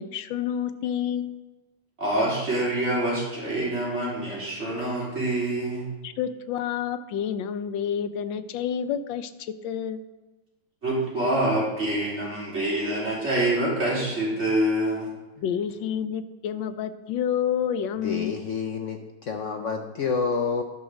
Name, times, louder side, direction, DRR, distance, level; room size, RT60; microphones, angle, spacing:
voice 1, 0.0-1.4 6.0-10.0 15.4-18.3, left 8 dB, 85° left, 11 dB, 1.4 m, -29 dB
voice 2, 2.0-5.9 10.8-15.1, right 1 dB, 35° right, -6 dB, 3.7 m, -26 dB
voice 3, 18.0-20.6, left 5 dB, 65° left, 4 dB, 0.8 m, -28 dB
11.0 x 5.7 x 6.3 m, 1.2 s
omnidirectional pair, 2.0 m